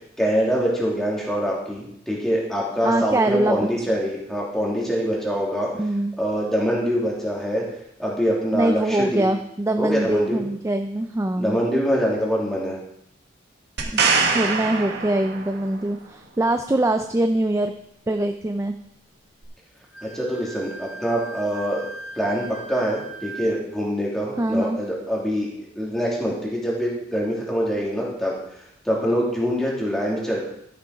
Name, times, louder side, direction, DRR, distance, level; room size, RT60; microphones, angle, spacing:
voice 1, 0.2-5.7 6.2-7.6 8.0-9.2 9.8-10.4 11.4-12.8 20.1-21.8 22.2-25.5 25.8-28.3 28.8-30.4, equal, ahead, -4 dB, 2.7 m, -24 dB
voice 2, 2.8-4.0 5.8-6.1 8.5-11.6 13.9-14.1 14.3-17.7 18.1-18.7 24.4-24.8, right 1 dB, 15° right, 7 dB, 0.4 m, -23 dB
sound 1, 13.8-15.8 19.4-19.5, right 5 dB, 55° right, 1.7 m, -23 dB
Wind instrument woodwind instrument, 19.9-23.6, right 3 dB, 60° left, 1.4 m, -39 dB
12.5 x 6.8 x 4.7 m, 0.76 s
head